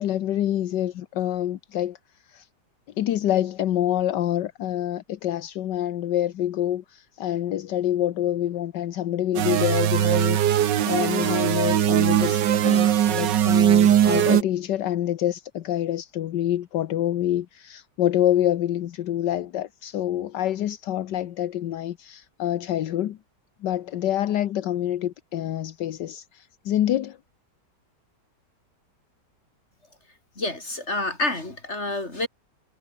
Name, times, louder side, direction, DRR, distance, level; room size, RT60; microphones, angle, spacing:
voice 1, 0.0-2.0 2.3-2.5 3.0-23.2 23.6-27.2, left 12 dB, 80° left, 1.5 m, -26 dB
sound 1, 9.3-14.4, right 10 dB, 90° right, 1.7 m, -20 dB
voice 2, 30.4-32.3, left 2 dB, 40° left, 5.8 m, -28 dB
omnidirectional pair, 1.9 m